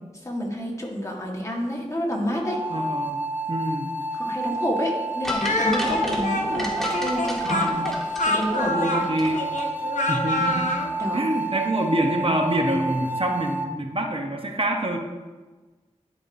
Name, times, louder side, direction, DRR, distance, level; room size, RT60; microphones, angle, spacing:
voice 1, 0.2-2.6 4.1-7.7 8.2-9.1 11.0-11.2, equal, 25° left, -2 dB, 1.5 m, -28 dB
sound 1, 2.4-13.7, right 2 dB, 15° right, 0.6 m, -30 dB
voice 2, 2.7-3.2 3.5-3.9 7.4-7.9 8.9-9.4 10.1-10.7 11.1-15.0, right 1 dB, 45° right, 2 dB, 0.9 m, -26 dB
sound 2, 5.2-9.3 9.6-9.7, left 1 dB, 5° left, 1.4 m, -32 dB
Speech, 5.4-10.9, left 2 dB, 75° left, 0.8 m, -26 dB
11.0 x 4.7 x 2.7 m, 1.3 s
wide cardioid pair, 50°, 13 cm